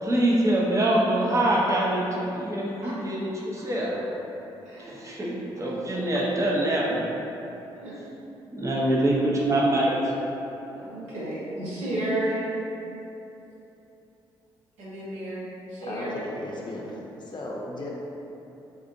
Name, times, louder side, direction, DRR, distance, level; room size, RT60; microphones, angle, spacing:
voice 1, 0.0-3.9 4.9-7.0 8.5-10.1, right 1 dB, 25° right, -5 dB, 0.8 m, -24 dB
voice 2, 10.7-12.4 14.8-16.2, right 1 dB, 70° right, -10 dB, 1.2 m, -32 dB
voice 3, 15.8-17.0 17.3-17.9, left 1 dB, 40° left, -3 dB, 0.6 m, -35 dB
3.6 x 2.5 x 2.6 m, 2.9 s
hypercardioid pair, 45°, 12 cm